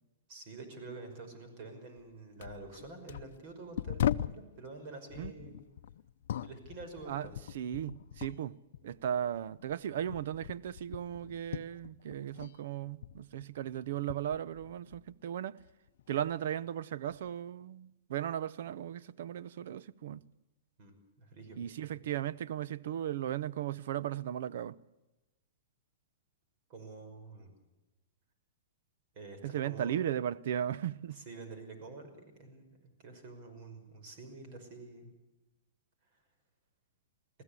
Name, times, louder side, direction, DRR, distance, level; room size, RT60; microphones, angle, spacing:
voice 1, 0.3-5.6 6.4-7.3 20.8-22.0 26.7-27.5 29.1-29.9 31.1-32.7 33.0-35.1, right 3 dB, 45° right, 5.6 m, -48 dB
sound 1, 2.0-2.1 2.4-4.5 5.1-8.5 8.7-12.6 12.8-15.2 15.6-16.3 17.1-17.3, left 11 dB, 70° left, 0.6 m, -40 dB
voice 2, 7.5-15.6 16.1-20.2 21.6-24.8 29.4-31.2, right 10 dB, 65° right, 0.7 m, -36 dB
21.0 x 16.0 x 8.3 m
hypercardioid pair, 150°, 0 cm